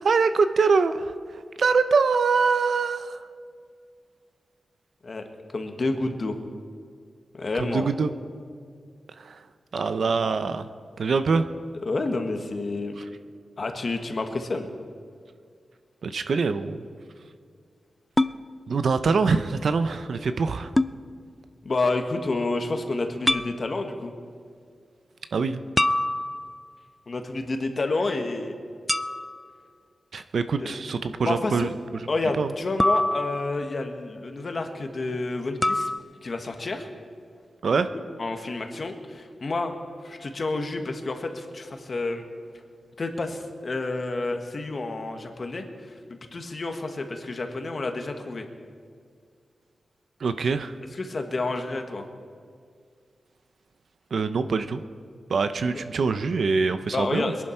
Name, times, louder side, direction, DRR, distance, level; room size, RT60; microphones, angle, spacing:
voice 1, 0.0-1.1 1.6-3.2 7.5-8.1 9.2-9.4 9.7-10.7 11.0-11.5 13.0-13.1 16.0-16.8 18.7-20.7 25.3-25.6 30.1-32.1 32.3-32.5 37.6-37.9 50.2-50.7 54.1-54.8 55.3-57.3, right 4 dB, 70° right, 10 dB, 0.7 m, -24 dB
voice 2, 5.0-6.4 7.3-7.9 11.8-13.0 13.6-14.7 21.6-24.1 27.1-28.5 30.6-30.8 31.2-31.7 32.1-35.9 36.2-36.9 38.2-39.8 40.0-42.2 43.0-45.6 46.1-48.4 51.0-52.0 55.7-55.8 56.9-57.4, left 3 dB, 45° left, 5 dB, 1.4 m, -29 dB
sound 1, 18.2-18.4 20.8-21.0 23.3-23.5 25.8-26.7 28.9-29.5 32.8-33.7 35.6-36.0, left 1 dB, 10° left, 0.3 m, -24 dB
22.5 x 11.0 x 4.5 m, 2.1 s
wide cardioid pair, 110°, 0 cm